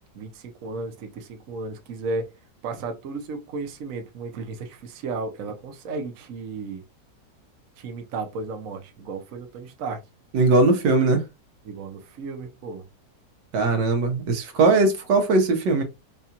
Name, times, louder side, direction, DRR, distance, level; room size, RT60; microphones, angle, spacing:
voice 1, 0.1-2.2 2.6-6.8 7.8-10.0 11.6-12.8, right 3 dB, 60° right, 1.0 m, -34 dB
voice 2, 10.3-11.2 13.5-15.8, right 3 dB, 80° right, 1.5 m, -19 dB
4.8 x 2.4 x 2.8 m
omnidirectional pair, 1.8 m